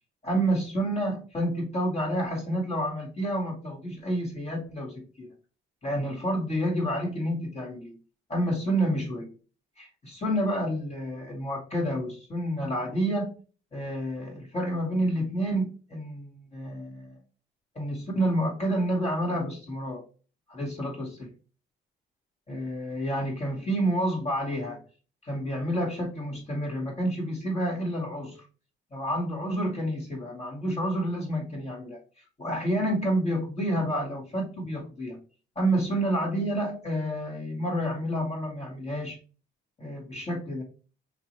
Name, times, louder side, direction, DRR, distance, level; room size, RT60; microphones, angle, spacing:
voice 1, 0.2-5.3 5.8-8.0 8.3-9.3 9.8-13.3 13.7-17.2 17.7-20.0 20.5-21.3 22.5-24.8 25.2-28.5 28.9-32.0 32.4-35.2 35.6-39.2 39.8-40.6, right 1 dB, 35° left, -2 dB, 2.5 m, -29 dB
5.7 x 3.0 x 3.1 m, 0.35 s
cardioid pair, 90°, 20 cm